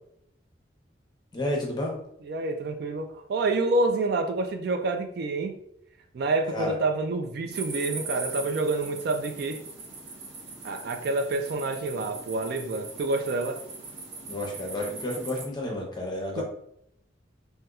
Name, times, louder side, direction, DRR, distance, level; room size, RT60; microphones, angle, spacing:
voice 1, 1.3-1.9 6.5-6.8 14.2-16.4, left 1 dB, 25° left, 0 dB, 0.7 m, -31 dB
voice 2, 2.3-5.6 6.1-9.6 10.6-13.6 16.4-16.5, right 2 dB, 55° right, 6 dB, 0.3 m, -28 dB
sound 1, 7.5-15.4, right 4 dB, 85° right, 0.7 m, -40 dB
4.1 x 2.2 x 2.3 m, 0.73 s
head